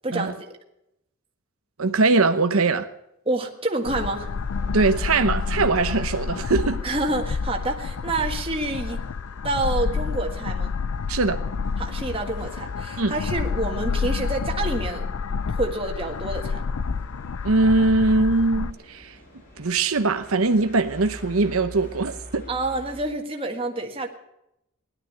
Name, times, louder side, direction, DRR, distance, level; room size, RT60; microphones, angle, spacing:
voice 1, 0.0-0.5 3.2-4.3 6.8-9.0 9.4-10.7 11.8-15.1 15.5-16.6 22.5-24.1, right 2 dB, 25° right, 1.7 m, -28 dB
voice 2, 1.8-2.9 4.7-6.8 11.1-11.4 13.0-13.2 17.4-19.1 19.6-22.4, right 3 dB, 80° right, 1.0 m, -21 dB
sound 1, 3.9-18.7, left 5 dB, 80° left, 0.5 m, -29 dB
sound 2, 4.0-23.0, equal, 40° left, 7.2 m, -47 dB
17.5 x 12.0 x 6.7 m
head